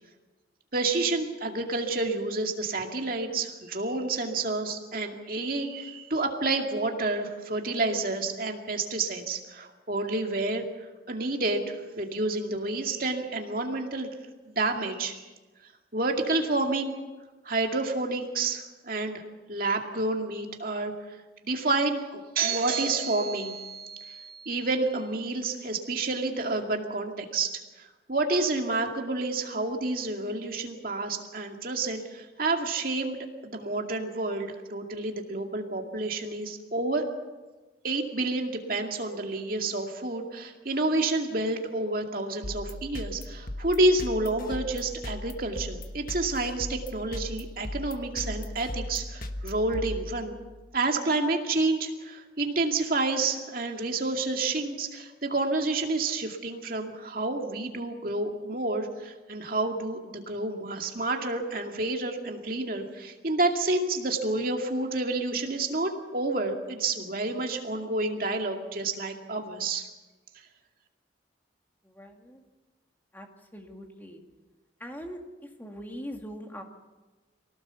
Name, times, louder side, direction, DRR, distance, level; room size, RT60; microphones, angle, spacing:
voice 1, 0.7-14.1 14.5-15.2 15.9-16.9 17.4-19.2 19.5-20.9 21.4-37.1 37.8-50.4 50.7-69.9, right 2 dB, 45° right, 3 dB, 2.3 m, -29 dB
sound 1, 42.4-50.6, left 1 dB, 45° left, 1.3 m, -38 dB
voice 2, 71.8-72.4 73.1-73.3 73.5-74.2 74.8-75.2 75.6-76.6, equal, 10° left, 2 dB, 2.1 m, -41 dB
24.5 x 17.5 x 7.1 m, 1.2 s
head